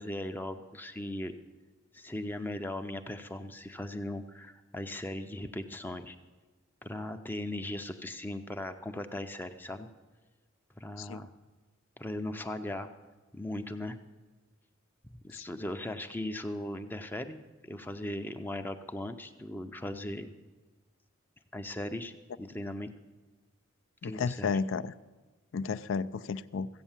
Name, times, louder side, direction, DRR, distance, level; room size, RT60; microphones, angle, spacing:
voice 1, 0.0-1.3 1.9-6.2 6.8-9.9 10.8-11.3 12.0-12.9 13.3-14.0 15.1-20.3 21.5-22.9 24.0-24.5, left 1 dB, 10° left, 7 dB, 0.5 m, -38 dB
voice 2, 24.0-24.9 25.5-26.7, left 5 dB, 65° left, 13 dB, 0.4 m, -32 dB
15.0 x 8.1 x 7.2 m, 1.3 s
head